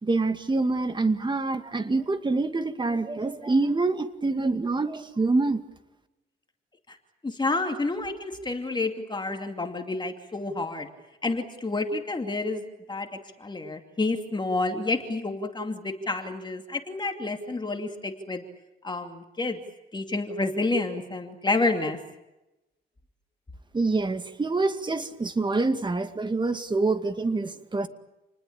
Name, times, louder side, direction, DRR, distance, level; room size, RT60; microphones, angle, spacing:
voice 1, 0.0-5.6 23.7-27.9, right 3 dB, 25° right, 9 dB, 2.2 m, -26 dB
voice 2, 7.2-10.9 11.2-12.6 12.9-13.1 13.4-18.4 18.8-19.6 19.9-22.0, left 3 dB, 20° left, 5 dB, 2.6 m, -29 dB
29.0 x 20.5 x 8.7 m, 0.98 s
cardioid pair, 90°, 20 cm